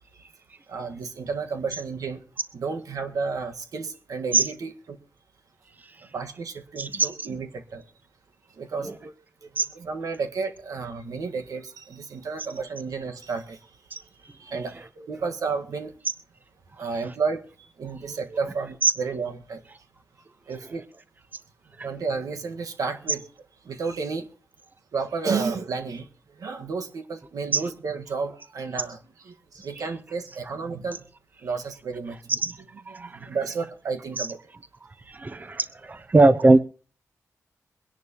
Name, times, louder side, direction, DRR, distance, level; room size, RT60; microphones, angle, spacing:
voice 1, 0.7-2.2 2.5-4.7 6.1-7.8 8.6-9.1 9.7-13.6 14.4-15.9 16.8-17.4 17.8-19.6 20.5-20.8 21.8-23.2 23.6-24.3 24.9-26.1 26.4-29.0 29.2-31.0 31.4-32.4 33.0-34.4, right 4 dB, 75° right, 6 dB, 1.5 m, -31 dB
voice 2, 6.8-7.1 9.6-9.7 13.9-14.0 18.8-18.9 21.8-21.9 27.5-27.6 32.4-32.5 32.9-33.3 34.2-34.3 35.1-36.6, right 2 dB, 30° right, 12 dB, 0.8 m, -20 dB
23.0 x 10.5 x 3.0 m, 0.38 s
cardioid pair, 80°, 6 cm